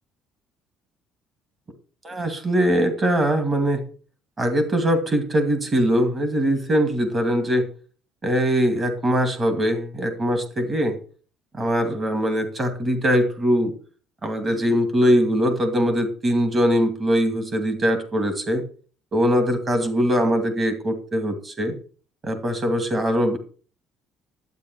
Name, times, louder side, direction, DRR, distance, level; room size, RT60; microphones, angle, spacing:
voice 1, 2.0-3.8 4.4-7.7 8.2-11.0 11.5-13.7 14.2-18.6 19.1-21.8 22.2-23.4, equal, 20° right, 6 dB, 2.4 m, -21 dB
12.0 x 9.2 x 4.7 m, 0.40 s
cardioid pair, 165°, 0 cm